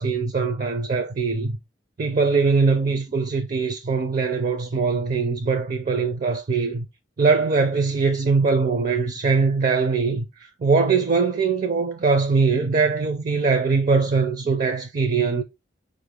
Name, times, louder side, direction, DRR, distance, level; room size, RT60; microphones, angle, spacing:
voice 1, 0.0-1.5 2.0-6.9 7.2-10.2 10.6-15.4, right 4 dB, 45° right, 0.5 m, -21 dB
5.2 x 2.6 x 3.2 m
head